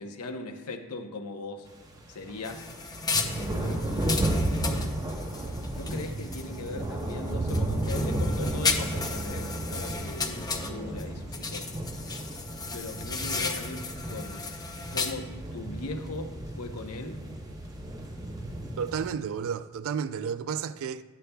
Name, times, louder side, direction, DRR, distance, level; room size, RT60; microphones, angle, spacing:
voice 1, 0.0-1.7 2.1-2.6 3.1-3.9 4.2-5.3 5.7-11.8 12.1-12.2 12.7-14.5 14.9-17.2, left 3 dB, 80° left, 0.8 m, -39 dB
sound 1, 1.7-19.1, right 1 dB, 15° right, 0.7 m, -33 dB
sound 2, 2.4-6.7 7.1-11.0 11.3-15.1, left 4 dB, 15° left, 0.5 m, -34 dB
voice 2, 18.8-21.0, right 7 dB, 60° right, 0.3 m, -32 dB
11.5 x 8.2 x 2.2 m
head